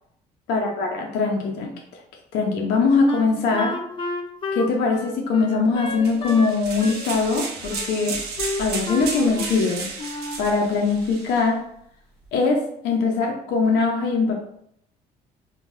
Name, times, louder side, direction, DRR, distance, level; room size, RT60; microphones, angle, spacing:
voice 1, 0.5-1.8 2.3-3.8 4.5-8.2 8.6-9.9 10.4-11.6 12.3-14.4, left 4 dB, 85° left, 1 dB, 0.6 m, -22 dB
Wind instrument woodwind instrument, 3.1-6.5 6.8-7.9 8.4-9.7 10.0-10.5, left 2 dB, 30° left, 0.4 m, -31 dB
sound 1, 6.0-11.4, right 4 dB, 70° right, 0.6 m, -33 dB
3.0 x 2.3 x 2.6 m, 0.73 s
cardioid pair, 110°, 17 cm